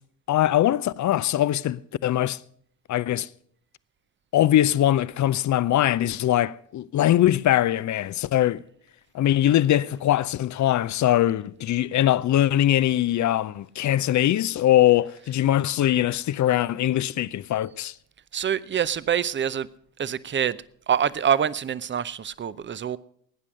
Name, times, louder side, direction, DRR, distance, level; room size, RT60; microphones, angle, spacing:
voice 1, 0.3-2.4 2.9-3.3 4.3-8.6 9.1-17.9, left 12 dB, 35° left, 0.6 m, -22 dB
voice 2, 18.3-19.7 20.0-20.6 20.9-23.0, right 8 dB, 25° right, 0.6 m, -25 dB
18.0 x 9.8 x 6.4 m
hypercardioid pair, 55°, 49 cm